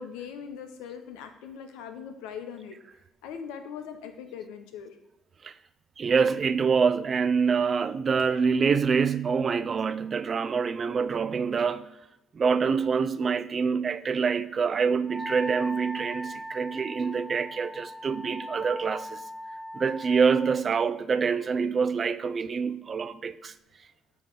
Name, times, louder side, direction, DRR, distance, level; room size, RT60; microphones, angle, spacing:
voice 1, 0.0-2.8 3.2-5.0, left 7 dB, 85° left, 0.7 m, -40 dB
voice 2, 6.0-11.9 12.3-19.2 19.7-23.5, right 5 dB, 45° right, 0.4 m, -26 dB
Wind instrument woodwind instrument, 15.1-20.6, equal, 25° right, 0.8 m, -39 dB
7.2 x 3.1 x 6.1 m
supercardioid pair, 65°, 0 cm